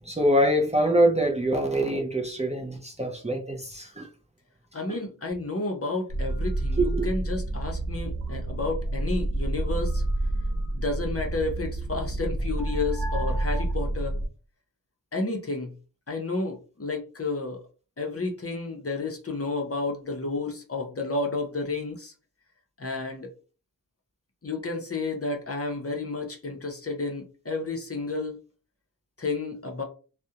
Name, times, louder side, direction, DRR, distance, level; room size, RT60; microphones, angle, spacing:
voice 1, 0.1-4.1 4.9-5.0 6.8-7.1, right 1 dB, 20° right, 0.5 m, -24 dB
voice 2, 4.7-10.0 10.7-14.2 15.1-15.7 16.1-17.6 18.0-22.1 22.8-23.3 24.4-28.4 29.2-29.8, left 3 dB, 40° left, 0.6 m, -31 dB
sound 1, 6.1-14.3, right 1 dB, 75° right, 0.8 m, -29 dB
2.4 x 2.1 x 2.8 m
wide cardioid pair, 50°, 37 cm